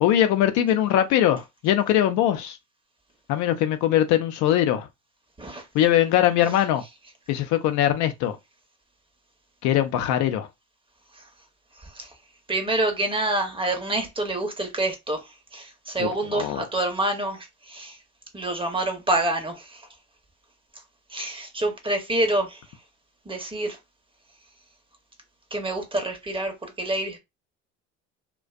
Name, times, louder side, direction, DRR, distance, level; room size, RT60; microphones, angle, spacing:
voice 1, 0.0-2.6 3.3-4.9 5.7-6.8 7.3-8.4 9.6-10.5 16.0-16.6, left 11 dB, 55° left, 0.5 m, -21 dB
voice 2, 11.8-12.1 12.5-18.0 18.3-19.9 21.1-22.6 23.3-23.8 25.5-27.2, right 2 dB, 15° right, 0.8 m, -27 dB
2.4 x 2.1 x 2.4 m
hypercardioid pair, 70°, 36 cm